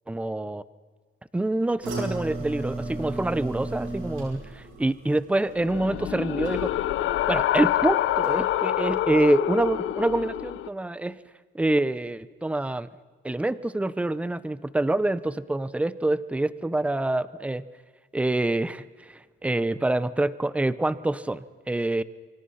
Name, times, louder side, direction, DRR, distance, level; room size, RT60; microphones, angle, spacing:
voice 1, 0.1-0.6 1.3-6.8 7.3-11.2 11.5-12.9 13.2-17.6 18.1-22.0, right 2 dB, 5° right, 16 dB, 0.7 m, -26 dB
sound 1, 1.8-7.0 7.4-7.8 8.2-8.3, right 2 dB, 85° right, 8.0 m, -35 dB
sound 2, 5.6-10.7, left 13 dB, 85° left, 0.8 m, -26 dB
28.5 x 25.0 x 5.7 m, 1.5 s
cardioid pair, 160°, 20 cm